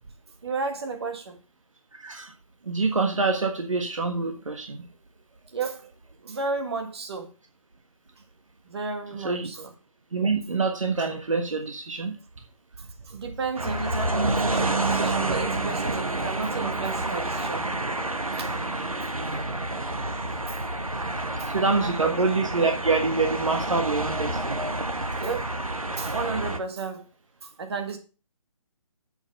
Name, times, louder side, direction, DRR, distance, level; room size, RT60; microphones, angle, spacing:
voice 1, 0.4-1.4 5.5-5.8 6.2-7.3 8.7-9.7 13.1-17.7 18.4-18.5 21.4-21.5 21.8-22.2 25.2-25.5 26.0-27.0 27.4-28.0, right 4 dB, 50° right, 1.9 m, -32 dB
voice 2, 2.0-2.3 2.7-4.9 9.2-9.5 10.1-12.1 19.2-19.5 21.5-24.7, right 3 dB, 70° right, 1.5 m, -26 dB
sound 1, 13.6-26.6, right 2 dB, 90° right, 1.3 m, -29 dB
8.0 x 7.8 x 4.6 m
figure-of-eight pair, 145°, 17 cm